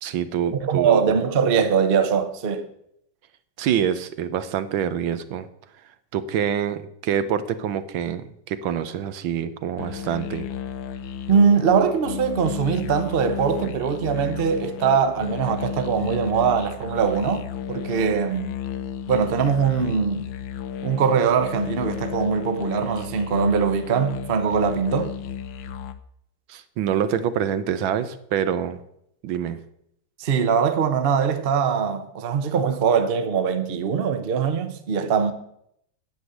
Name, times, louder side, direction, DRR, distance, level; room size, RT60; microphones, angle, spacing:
voice 1, 0.0-1.2 3.6-5.5 6.1-10.5 26.5-28.8 29.2-29.6, right 9 dB, 80° right, 1.6 m, -26 dB
voice 2, 0.6-2.7 11.3-18.5 19.1-20.2 20.8-25.1 30.2-35.3, right 6 dB, 40° right, 0.8 m, -22 dB
sound 1, 9.8-25.9, left 9 dB, 75° left, 1.5 m, -33 dB
9.5 x 7.9 x 8.2 m
omnidirectional pair, 2.2 m